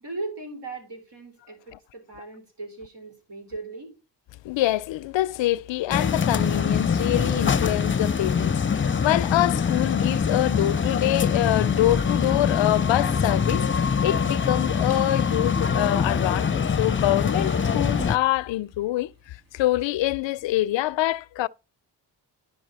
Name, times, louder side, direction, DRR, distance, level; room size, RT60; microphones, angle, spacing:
voice 1, 0.0-3.9, right 3 dB, 65° right, 4.3 m, -38 dB
voice 2, 4.4-21.5, left 15 dB, 75° left, 0.6 m, -25 dB
sound 1, 5.9-18.2, left 6 dB, 25° left, 0.7 m, -24 dB
sound 2, 14.9-20.9, right 4 dB, 45° right, 2.5 m, -49 dB
10.5 x 5.5 x 4.1 m
supercardioid pair, 45°, 45 cm